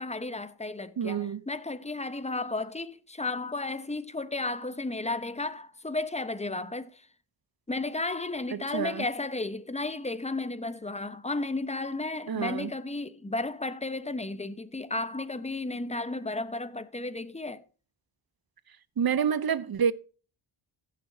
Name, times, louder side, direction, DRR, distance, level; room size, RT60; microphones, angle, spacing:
voice 1, 0.0-7.0 7.7-17.6, left 2 dB, 15° left, 1.0 m, -33 dB
voice 2, 1.0-1.4 8.5-9.1 12.3-12.7 19.0-19.9, right 7 dB, 50° right, 0.8 m, -28 dB
15.5 x 6.8 x 2.7 m
cardioid pair, 70°, 49 cm